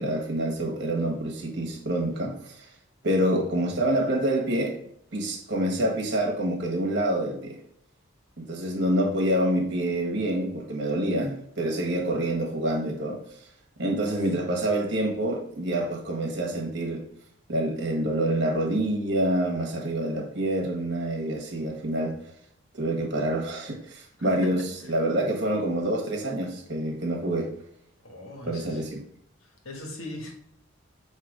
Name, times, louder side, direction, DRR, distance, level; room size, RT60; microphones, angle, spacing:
voice 1, 0.0-2.7 3.0-4.8 5.1-7.6 8.4-13.2 13.8-17.0 17.5-22.2 22.8-27.5 28.4-29.0, right 1 dB, 55° right, 1.4 m, -27 dB
voice 2, 24.2-24.5 28.0-28.8 29.6-30.3, left 2 dB, 90° left, 1.6 m, -38 dB
6.7 x 3.0 x 4.9 m
head